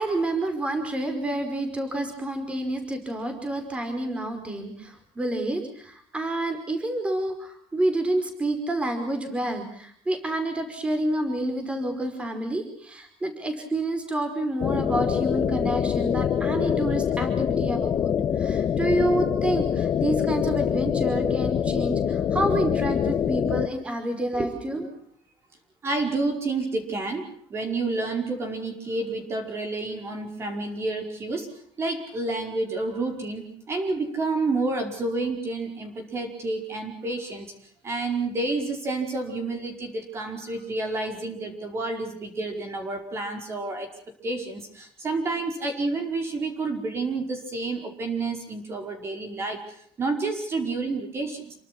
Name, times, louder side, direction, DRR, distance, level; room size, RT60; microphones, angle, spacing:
voice 1, 0.0-24.9, right 1 dB, 15° right, 7 dB, 5.1 m, -28 dB
sound 1, 14.6-23.7, left 8 dB, 40° left, 1.5 m, -25 dB
voice 2, 25.8-27.2 27.5-31.5 31.8-43.9 44.2-51.5, right 3 dB, 30° right, 5 dB, 5.0 m, -29 dB
29.0 x 24.0 x 6.2 m, 0.64 s
cardioid pair, 175°, 9 cm